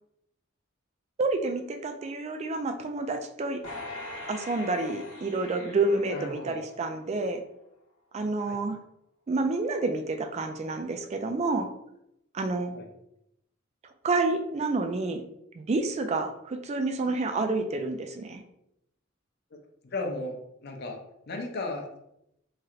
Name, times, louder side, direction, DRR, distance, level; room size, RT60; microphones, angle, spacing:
voice 1, 1.2-3.6 4.3-7.4 8.1-8.8 9.3-11.7 12.3-12.7 14.0-15.2 15.6-18.4, right 3 dB, 30° right, 6 dB, 0.3 m, -29 dB
sound 1, 3.6-7.1 7.6-7.7, left 2 dB, 85° left, 1.1 m, -42 dB
voice 2, 6.1-6.6 8.4-8.6 12.7-12.9 19.8-20.4 20.6-22.0, left 2 dB, 50° left, 2 dB, 0.5 m, -35 dB
3.1 x 2.8 x 2.4 m, 0.79 s
head